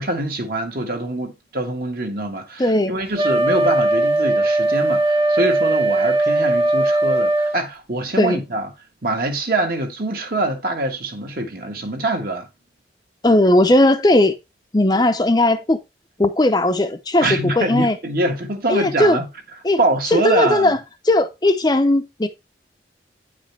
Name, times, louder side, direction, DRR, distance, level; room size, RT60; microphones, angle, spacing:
voice 1, 0.0-8.7 9.0-12.5 17.2-19.3 19.8-20.8, right 2 dB, 55° right, 1.5 m, -24 dB
voice 2, 2.6-2.9 8.2-8.4 13.2-14.4 14.7-15.8 16.2-18.0 18.7-19.2 19.6-19.8 20.1-20.8 21.0-22.3, left 1 dB, 20° left, 0.6 m, -17 dB
Wind instrument woodwind instrument, 3.2-7.6, right 2 dB, 35° right, 1.4 m, -18 dB
9.3 x 5.1 x 3.3 m
head